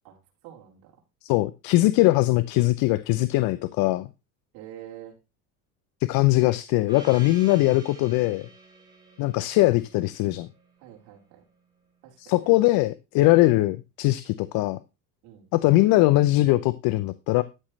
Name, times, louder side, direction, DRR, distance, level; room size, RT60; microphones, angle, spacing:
voice 1, 0.0-1.0 4.5-5.2 10.8-11.4 12.0-12.6 15.2-15.5, right 11 dB, 65° right, -1 dB, 4.3 m, -46 dB
voice 2, 1.2-4.1 6.0-8.5 9.2-10.5 12.2-14.8 15.5-17.4, left 18 dB, 60° left, 14 dB, 0.7 m, -21 dB
Gong, 6.9-11.2, right 2 dB, 10° right, 4.3 m, -48 dB
12.5 x 7.4 x 3.3 m, 0.27 s
supercardioid pair, 110°, 41 cm